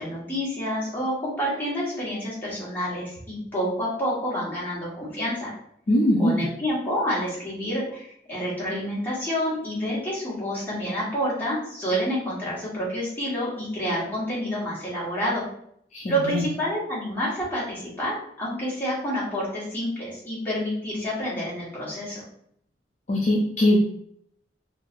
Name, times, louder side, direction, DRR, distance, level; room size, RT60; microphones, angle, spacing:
voice 1, 0.0-5.5 6.2-15.4 16.1-22.2, equal, 10° left, -8 dB, 1.2 m, -28 dB
voice 2, 5.9-6.5 15.9-16.4 23.1-23.8, left 1 dB, 40° left, -3 dB, 0.4 m, -21 dB
3.1 x 2.7 x 2.5 m, 0.68 s
head